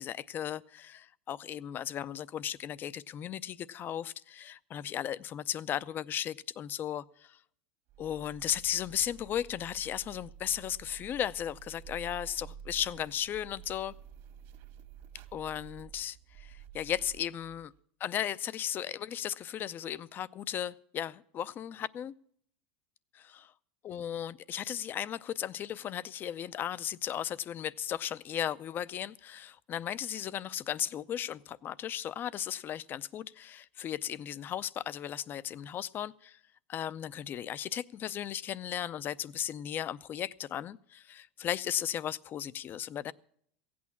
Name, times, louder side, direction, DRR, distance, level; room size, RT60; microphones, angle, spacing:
voice 1, 0.0-7.4 8.0-13.9 15.3-17.7 18.0-22.1 23.1-23.5 23.8-36.4 36.7-43.1, left 10 dB, 35° left, 0.5 m, -36 dB
sound 1, 7.9-17.8, right 8 dB, 55° right, 1.6 m, -51 dB
16.0 x 8.6 x 7.1 m
supercardioid pair, 115°, 6 cm